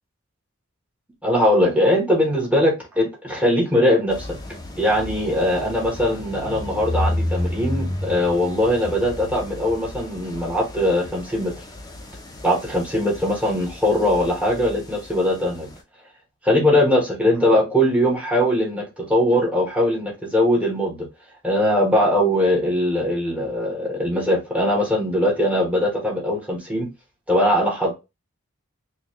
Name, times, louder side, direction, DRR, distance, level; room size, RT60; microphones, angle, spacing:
voice 1, 1.2-4.3 4.8-11.5 12.4-15.7 16.4-21.1 21.4-26.9 27.3-27.9, left 1 dB, 5° right, 1.0 m, -20 dB
sound 1, 4.1-15.8, left 1 dB, 20° left, 0.6 m, -32 dB
3.9 x 2.3 x 2.9 m
head